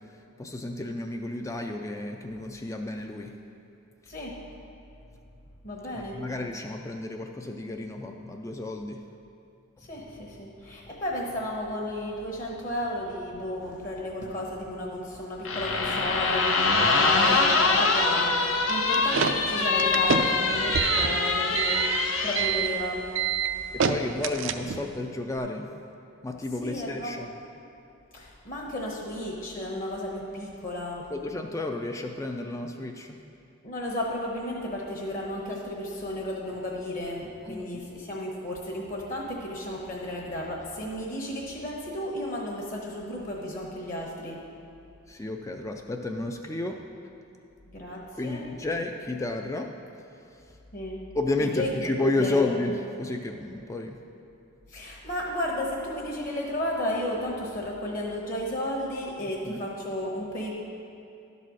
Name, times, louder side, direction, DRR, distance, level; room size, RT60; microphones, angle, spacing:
voice 1, 0.4-3.3 5.9-9.0 23.7-25.7 26.2-27.3 31.1-33.2 37.4-37.8 45.1-46.8 48.2-49.7 51.1-54.0 59.5-59.6, left 2 dB, 15° left, 4 dB, 0.3 m, -31 dB
voice 2, 5.6-6.2 9.8-23.1 26.6-27.2 28.1-31.1 33.6-44.4 47.7-48.4 50.7-51.0 51.6-51.9 52.2-52.5 54.7-60.5, left 1 dB, 40° left, -2 dB, 1.0 m, -33 dB
sound 1, 15.5-22.5, left 3 dB, 75° left, 0.8 m, -24 dB
sound 2, 18.7-25.0, right 7 dB, 60° right, 0.4 m, -27 dB
11.5 x 4.1 x 6.3 m, 2.6 s
head